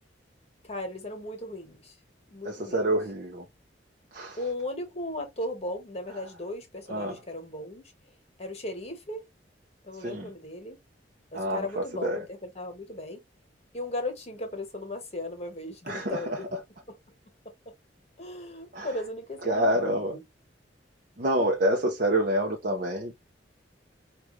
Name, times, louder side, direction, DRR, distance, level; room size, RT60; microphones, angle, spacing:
voice 1, 0.6-2.0 2.3-2.9 4.4-7.8 8.4-9.2 9.8-10.8 11.3-13.2 13.7-16.5 16.9-17.0 18.2-20.2, left 1 dB, 35° left, 1.3 m, -36 dB
voice 2, 2.4-3.5 4.1-4.4 6.9-7.2 10.0-10.3 11.3-12.2 15.9-16.6 18.7-18.9 19.5-20.2 21.2-23.3, right 1 dB, 45° right, 0.7 m, -27 dB
4.9 x 2.4 x 3.1 m
head